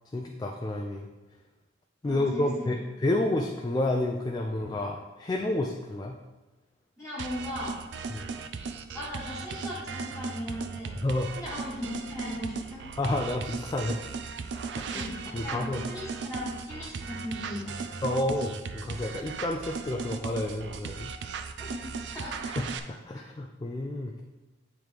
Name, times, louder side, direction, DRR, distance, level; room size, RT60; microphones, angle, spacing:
voice 1, 0.1-1.1 2.0-6.2 8.1-8.3 11.0-11.3 13.0-14.0 14.8-15.0 15.3-15.8 18.0-21.1 22.6-24.1, left 1 dB, 20° left, 1 dB, 0.3 m, -30 dB
voice 2, 2.0-2.7 7.0-7.8 8.9-11.0 11.3-12.8 14.8-17.8 21.6-22.6 23.1-23.2, left 1 dB, 5° right, -11 dB, 1.2 m, -38 dB
sound 1, 7.2-22.8, right 5 dB, 70° right, 0.4 m, -37 dB
9.1 x 3.1 x 3.4 m, 1.1 s
head